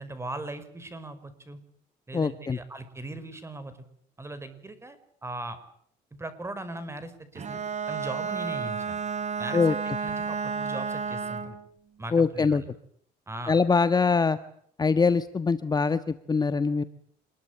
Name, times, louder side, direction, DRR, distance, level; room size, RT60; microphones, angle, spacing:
voice 1, 0.0-1.6 2.1-3.7 4.2-5.6 6.2-7.6 7.9-9.0 9.4-11.6 12.0-12.7 13.3-13.6, right 2 dB, 15° right, 13 dB, 5.4 m, -39 dB
voice 2, 2.1-2.6 9.5-9.8 12.1-12.6 13.5-14.4 14.8-16.8, left 4 dB, 25° left, 11 dB, 1.4 m, -23 dB
Bowed string instrument, 7.3-11.6, right 5 dB, 45° right, 4.1 m, -32 dB
27.5 x 21.5 x 8.9 m, 0.65 s
cardioid pair, 110°, 17 cm